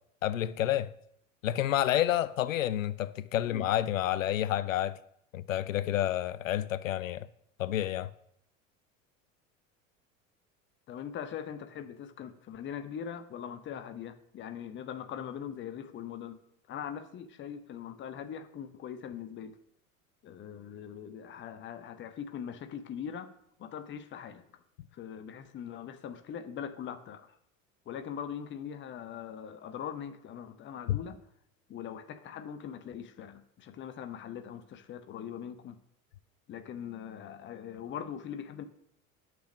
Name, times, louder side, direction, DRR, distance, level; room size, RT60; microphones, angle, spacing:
voice 1, 0.2-0.9 1.4-5.0 5.3-7.3 7.6-8.1 30.9-31.0, left 12 dB, 70° left, 0.5 m, -29 dB
voice 2, 10.9-16.4 16.7-19.6 20.2-23.3 23.6-24.5 24.9-27.4 27.9-31.2 31.7-35.8 36.5-38.6, left 8 dB, 30° left, 0.8 m, -41 dB
8.2 x 6.2 x 6.1 m
figure-of-eight pair, 70°, 41 cm